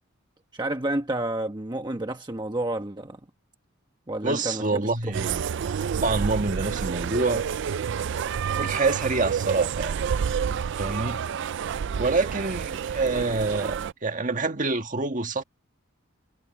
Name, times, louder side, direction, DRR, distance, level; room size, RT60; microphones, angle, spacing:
voice 1, 0.5-3.2 4.1-5.1, right 1 dB, 20° right, 1.1 m, -30 dB
voice 2, 4.2-5.4 6.0-7.5 7.8-8.0 8.6-10.0 10.8-11.2 12.0-15.4, right 3 dB, 40° right, 1.7 m, -27 dB
sound 1, 5.1-13.9, right 7 dB, 60° right, 0.4 m, -29 dB
head